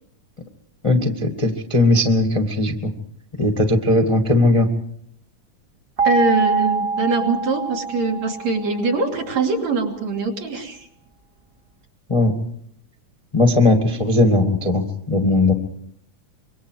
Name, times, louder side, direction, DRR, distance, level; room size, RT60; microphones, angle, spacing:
voice 1, 0.8-2.9 3.4-4.7 12.1-12.3 13.3-15.5, left 2 dB, 15° left, 3 dB, 1.5 m, -18 dB
sound 1, 6.0-8.9, right 4 dB, 20° right, 1.7 m, -24 dB
voice 2, 6.0-10.8, right 3 dB, 60° right, 1 dB, 4.2 m, -22 dB
26.0 x 24.0 x 4.8 m, 0.67 s
omnidirectional pair, 3.6 m